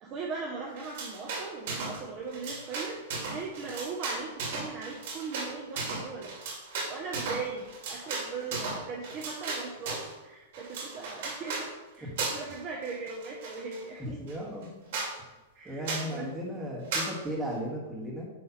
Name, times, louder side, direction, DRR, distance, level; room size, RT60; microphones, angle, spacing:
voice 1, 0.0-3.0 3.3-6.4 6.9-14.2 15.5-16.3, right 4 dB, 25° right, -1 dB, 0.8 m, -39 dB
sound 1, 0.8-2.0 2.3-10.1 10.5-11.7 12.2-12.6 12.8-13.8 14.3-14.4 14.6-14.7 14.9-15.1 15.8-16.1 16.9-17.1, right 3 dB, 55° right, 2.4 m, -35 dB
voice 2, 14.0-14.9 15.6-18.3, equal, 10° right, -2 dB, 1.6 m, -36 dB
9.9 x 3.3 x 5.7 m, 1.1 s
supercardioid pair, 170°, 0 cm